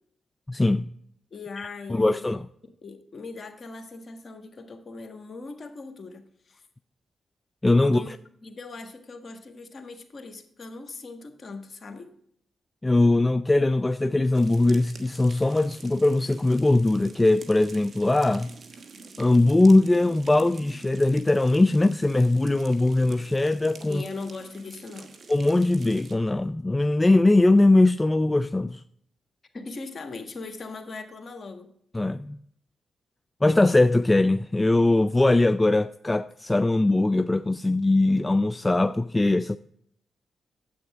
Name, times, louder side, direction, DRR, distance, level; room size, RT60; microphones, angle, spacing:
voice 1, 0.5-0.9 1.9-2.4 7.6-8.0 12.8-18.5 19.2-24.0 25.3-28.8 31.9-32.4 33.4-39.6, left 2 dB, 20° left, 0.4 m, -21 dB
voice 2, 1.3-2.4 2.8-6.7 7.8-8.1 8.4-12.1 23.8-25.1 29.5-31.7, left 3 dB, 50° left, 1.5 m, -39 dB
sound 1, 14.3-26.2, right 4 dB, 60° right, 1.2 m, -48 dB
9.7 x 8.2 x 3.6 m
supercardioid pair, 45°, 0 cm